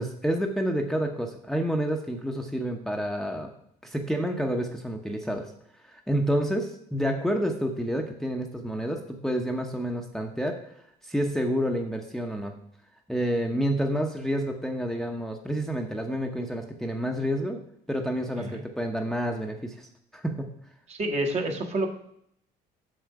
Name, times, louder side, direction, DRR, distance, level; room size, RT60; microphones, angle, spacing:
voice 1, 0.0-3.5 3.8-5.5 5.8-10.6 11.0-12.5 13.1-17.6 17.9-20.5, equal, ahead, 3 dB, 0.9 m, -29 dB
voice 2, 20.9-21.9, right 1 dB, 40° right, 4 dB, 1.4 m, -28 dB
7.8 x 6.3 x 4.7 m, 0.70 s
cardioid pair, 110°, 17 cm